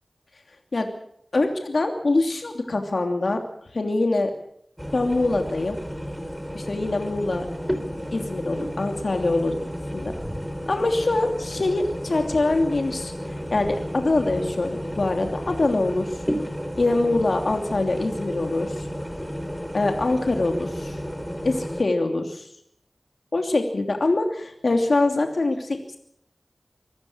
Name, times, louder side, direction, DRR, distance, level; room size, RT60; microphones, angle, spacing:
voice 1, 1.3-3.4 3.7-4.3 4.9-5.8 6.5-7.5 8.1-9.6 9.9-10.1 10.7-13.1 13.5-16.2 16.8-18.9 19.7-21.0 21.4-22.5 23.3-26.0, left 2 dB, 80° left, 4 dB, 2.9 m, -24 dB
sound 1, 4.8-21.8, equal, ahead, 3.8 m, -32 dB
25.5 x 15.0 x 8.6 m, 0.70 s
wide cardioid pair, 40°, 0 cm